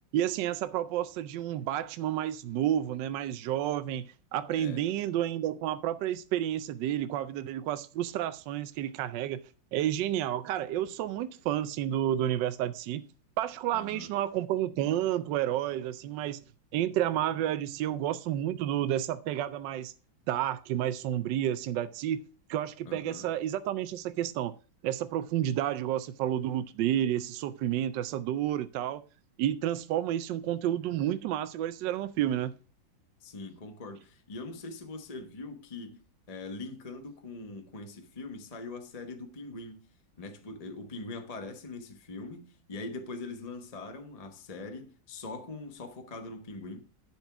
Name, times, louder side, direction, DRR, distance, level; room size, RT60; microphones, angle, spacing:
voice 1, 0.1-9.4 9.7-13.1 13.4-16.4 16.7-19.9 20.3-22.2 22.5-24.5 24.8-29.0 29.4-32.5, right 11 dB, 75° right, 1.2 m, -30 dB
voice 2, 4.5-4.8 13.7-14.1 22.8-23.3 33.2-36.0 36.3-39.9 40.2-46.8, left 3 dB, 30° left, 0.8 m, -42 dB
10.5 x 4.6 x 5.8 m
omnidirectional pair, 2.1 m